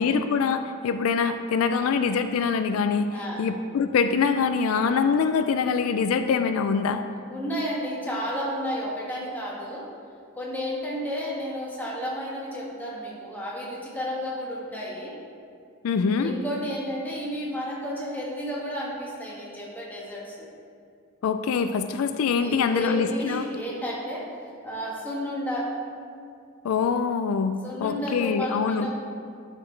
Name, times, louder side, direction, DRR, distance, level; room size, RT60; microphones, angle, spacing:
voice 1, 0.0-3.1 3.4-7.0 15.8-16.3 21.2-23.5 26.6-28.9, left 5 dB, 80° left, 9 dB, 0.3 m, -24 dB
voice 2, 3.1-3.5 7.3-9.9 10.3-15.2 16.2-20.5 22.4-24.3 24.6-25.7 27.6-28.9, equal, 10° left, -5 dB, 1.4 m, -32 dB
11.5 x 4.9 x 3.2 m, 2.4 s
head